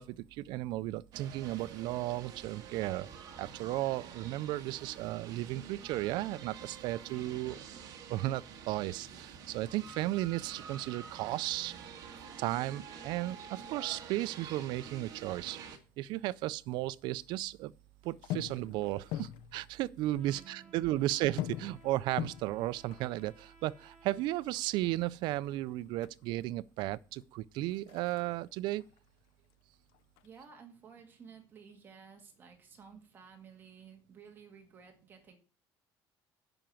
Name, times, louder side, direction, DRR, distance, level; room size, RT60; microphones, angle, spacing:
voice 1, 0.0-3.1 3.4-7.6 8.1-11.7 12.4-15.6 16.0-17.7 18.0-28.8, right 16 dB, 60° right, 0.4 m, -35 dB
sound 1, 1.1-15.8, right 7 dB, 45° right, 1.7 m, -48 dB
sound 2, 14.7-16.4 16.6-17.6 18.0-20.1 20.3-20.4 20.7-26.5 27.0-29.5 29.8-30.3, left 13 dB, 75° left, 0.5 m, -44 dB
Trumpet, 20.1-24.3, right 2 dB, 10° left, 3.0 m, -60 dB
voice 2, 20.3-21.0 29.4-29.5 30.2-35.4, right 6 dB, 25° right, 1.8 m, -55 dB
8.9 x 5.7 x 7.7 m
cardioid pair, 175°, 9 cm